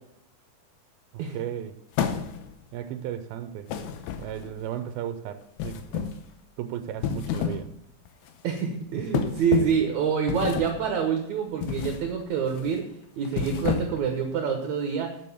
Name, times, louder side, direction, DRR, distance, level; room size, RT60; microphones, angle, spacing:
voice 1, 1.1-1.7 2.7-3.7 4.2-6.1 6.6-7.7, right 10 dB, 90° right, 2.5 m, -35 dB
sound 1, 1.9-2.6 3.7-4.6 5.6-6.3 6.9-7.7 8.1-8.3 9.1-9.9 10.3-10.9 11.6-12.1 12.5-12.7 13.3-14.1, left 8 dB, 80° left, 2.7 m, -30 dB
voice 2, 8.4-12.8 13.2-15.1, right 7 dB, 70° right, 2.0 m, -26 dB
7.7 x 6.9 x 7.0 m
omnidirectional pair, 4.3 m